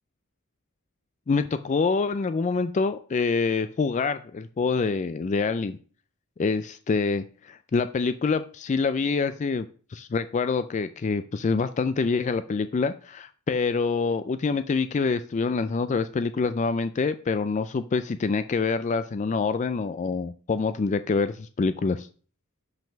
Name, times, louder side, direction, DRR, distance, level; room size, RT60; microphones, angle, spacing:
voice 1, 1.3-5.8 6.4-9.7 9.9-22.1, left 4 dB, 35° left, 11 dB, 0.3 m, -26 dB
6.0 x 5.4 x 5.8 m, 0.41 s
head